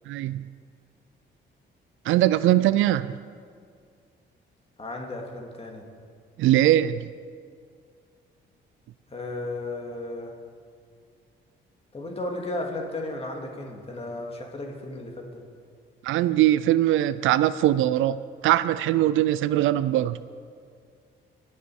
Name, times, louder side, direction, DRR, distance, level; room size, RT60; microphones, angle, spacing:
voice 1, 0.1-0.4 2.1-3.2 6.4-7.1 16.0-20.2, right 13 dB, 80° right, 0.4 m, -21 dB
voice 2, 4.8-5.8 9.1-10.3 11.9-15.4, left 2 dB, 30° left, 2.2 m, -34 dB
22.0 x 7.7 x 4.8 m
cardioid pair, 90°, 20 cm